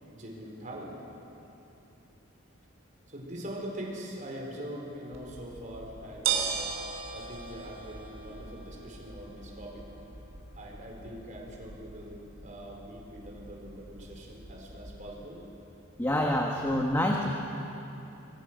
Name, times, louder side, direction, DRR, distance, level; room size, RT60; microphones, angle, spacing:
voice 1, 0.1-1.0 3.1-6.6 7.1-9.9 10.6-15.4, equal, 40° right, -1 dB, 4.7 m, -42 dB
sound 1, 5.1-15.2, right 6 dB, 70° right, 3.6 m, -39 dB
voice 2, 16.0-17.3, left 1 dB, 10° left, 0 dB, 1.4 m, -27 dB
25.5 x 21.5 x 6.4 m, 3.0 s
head